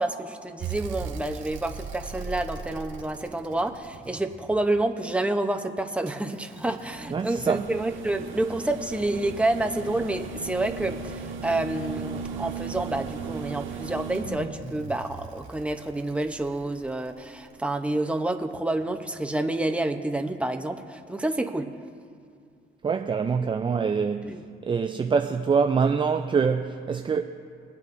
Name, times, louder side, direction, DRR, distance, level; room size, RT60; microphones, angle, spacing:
voice 1, 0.0-21.7 24.2-24.4, right 2 dB, 5° right, 0.8 m, -28 dB
sound 1, 0.6-4.8 6.1-17.3 18.8-18.9, right 4 dB, 75° right, 1.3 m, -37 dB
voice 2, 7.1-7.7 22.8-24.4 24.6-27.2, right 5 dB, 25° right, 0.4 m, -25 dB
24.0 x 8.3 x 2.6 m
cardioid pair, 90°, 20 cm